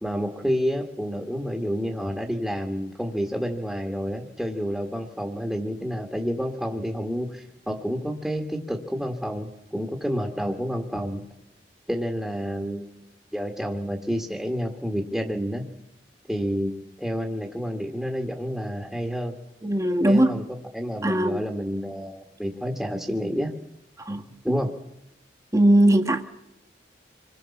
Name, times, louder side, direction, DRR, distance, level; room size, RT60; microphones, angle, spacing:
voice 1, 0.0-11.2 11.9-12.9 13.3-15.6 16.3-19.3 20.1-20.4 20.7-23.5 24.4-24.7, equal, ahead, 0 dB, 1.7 m, -29 dB
voice 2, 19.6-20.3 21.0-21.4 24.0-24.2 25.5-26.2, right 1 dB, 15° right, 4 dB, 1.6 m, -19 dB
26.5 x 21.0 x 7.2 m, 0.81 s
head